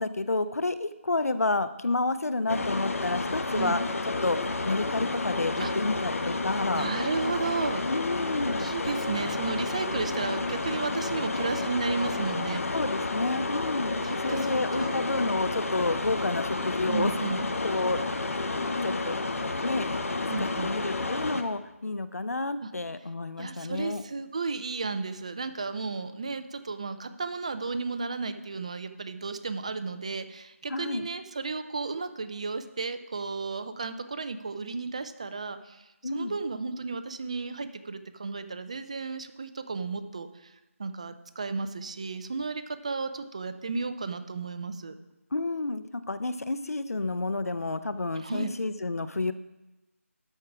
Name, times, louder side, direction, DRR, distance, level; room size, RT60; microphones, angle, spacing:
voice 1, 0.0-3.8 4.2-6.9 7.9-8.7 12.7-17.1 17.6-18.1 18.8-19.2 19.6-20.0 20.4-24.0 30.7-31.1 36.0-36.4 45.3-49.3, left 2 dB, 90° left, 12 dB, 0.6 m, -30 dB
sound 1, 2.5-21.4, left 3 dB, 70° left, 0.9 m, -31 dB
voice 2, 6.7-7.8 8.5-12.6 14.0-15.0 16.9-17.4 20.3-20.7 22.6-22.7 23.4-35.8 36.1-40.5 40.8-44.9 48.2-48.5, right 4 dB, 25° right, 10 dB, 0.4 m, -33 dB
12.5 x 4.6 x 4.8 m, 0.99 s
figure-of-eight pair, 170°, 8 cm